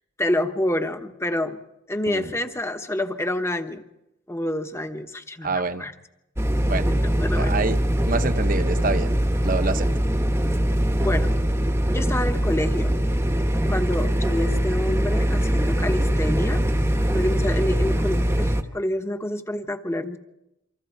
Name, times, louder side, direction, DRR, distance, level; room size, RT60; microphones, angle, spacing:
voice 1, 0.2-1.6 1.9-3.8 4.3-5.9 6.9-7.6 10.3-10.4 11.0-11.3 11.9-13.1 13.7-16.6 17.1-20.2, left 1 dB, 15° left, 7 dB, 1.2 m, -27 dB
voice 2, 5.4-5.9 6.6-6.9 7.3-7.8 8.1-9.1 9.4-9.9, right 3 dB, 40° right, 10 dB, 0.9 m, -26 dB
sound 1, 6.4-18.6, equal, 15° right, 1.1 m, -22 dB
27.5 x 25.5 x 4.6 m, 0.89 s
head